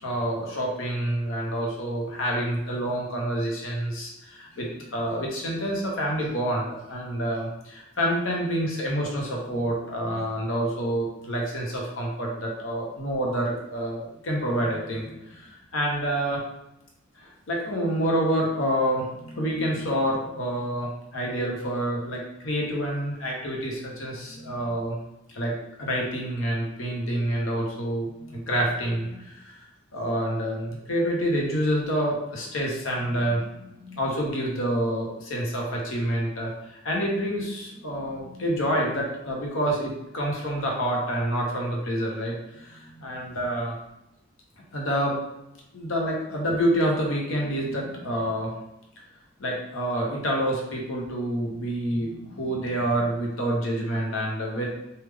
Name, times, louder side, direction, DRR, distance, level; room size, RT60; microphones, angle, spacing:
voice 1, 0.0-16.4 17.2-25.0 25.3-25.5 25.8-29.6 29.9-43.7 44.7-45.2 45.7-48.5 49.4-54.7, equal, 70° left, -1 dB, 0.9 m, -28 dB
3.3 x 2.3 x 3.5 m, 0.88 s
head